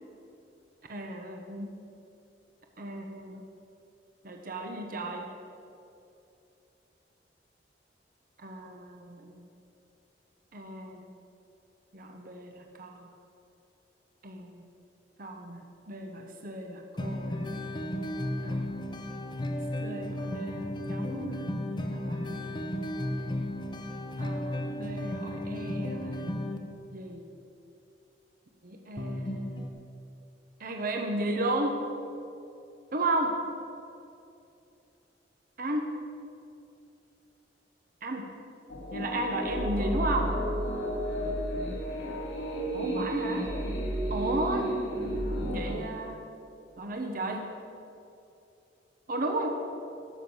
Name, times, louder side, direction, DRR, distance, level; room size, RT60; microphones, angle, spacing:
voice 1, 0.9-1.7 2.8-3.4 4.2-5.2 8.4-9.5 10.5-11.1 11.9-13.1 14.2-14.6 15.2-15.6 15.9-17.4 18.4-18.7 19.8-21.5 21.9-22.6 24.2-26.3 26.9-27.2 28.6-29.6 30.6-31.8 32.9-33.4 35.6-35.9 38.0-38.3 38.9-40.3 42.7-43.5 44.1-44.7 45.5-46.2 46.8-47.5 49.1-49.5, right 1 dB, 50° right, 3 dB, 1.0 m, -34 dB
sound 1, 17.0-26.6 29.0-29.7, left 1 dB, 25° left, 0.9 m, -34 dB
sound 2, 38.7-45.8, equal, 75° left, 2.9 m, -32 dB
12.5 x 7.2 x 7.8 m, 2.7 s
head